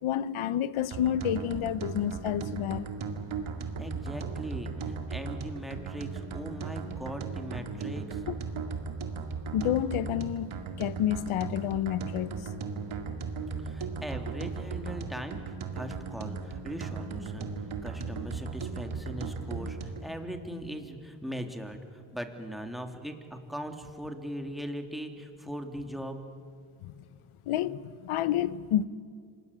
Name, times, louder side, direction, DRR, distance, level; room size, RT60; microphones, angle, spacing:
voice 1, 0.0-2.8 8.3-8.4 9.5-12.3 26.8-26.9 27.5-28.8, left 10 dB, 85° left, 0.8 m, -29 dB
sound 1, 0.9-20.1, right 5 dB, 75° right, 2.3 m, -37 dB
voice 2, 3.8-8.2 13.6-17.5 17.8-26.2, equal, ahead, 3.0 m, -40 dB
26.5 x 19.5 x 8.8 m
cardioid pair, 60°, 49 cm